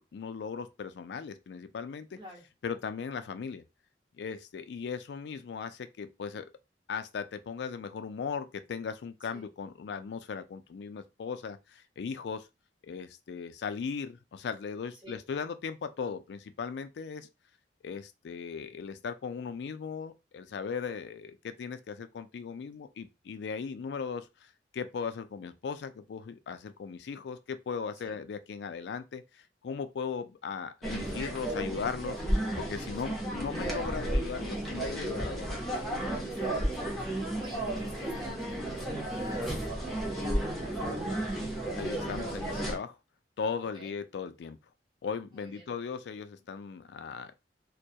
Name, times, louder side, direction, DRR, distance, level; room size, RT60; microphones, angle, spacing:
voice 1, 0.0-2.2 2.6-3.6 4.2-6.5 6.9-12.5 12.8-17.3 17.8-29.2 29.6-32.2 32.6-35.6 41.7-43.0 43.4-44.6 45.0-47.3, left 6 dB, 70° left, 0.3 m, -38 dB
sound 1, 30.8-42.8, right 1 dB, ahead, 0.7 m, -33 dB
voice 2, 36.2-41.1 43.6-44.0 45.3-45.7, left 1 dB, 25° right, 1.1 m, -48 dB
2.2 x 2.1 x 2.7 m
head